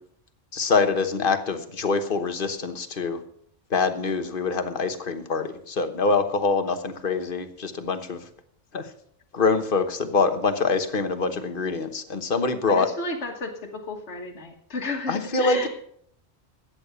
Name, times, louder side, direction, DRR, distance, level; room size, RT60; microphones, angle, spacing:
voice 1, 0.5-3.2 3.7-8.2 8.7-8.9 9.3-12.9 15.1-15.7, left 4 dB, 45° left, 9 dB, 1.3 m, -25 dB
voice 2, 12.7-15.7, left 2 dB, 65° left, -1 dB, 1.9 m, -32 dB
13.0 x 9.0 x 6.8 m, 0.66 s
omnidirectional pair, 1.3 m